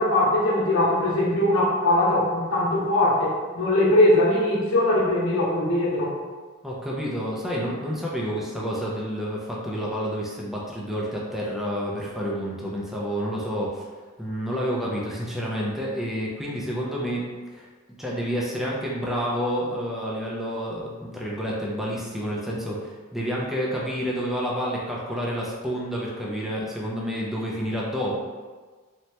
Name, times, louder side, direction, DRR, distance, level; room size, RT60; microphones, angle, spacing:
voice 1, 0.0-6.1, left 1 dB, 65° left, -7 dB, 0.9 m, -21 dB
voice 2, 6.6-13.9 14.2-17.3 17.5-17.7 18.0-28.2, equal, ahead, -5 dB, 0.3 m, -29 dB
3.1 x 2.1 x 2.7 m, 1.4 s
head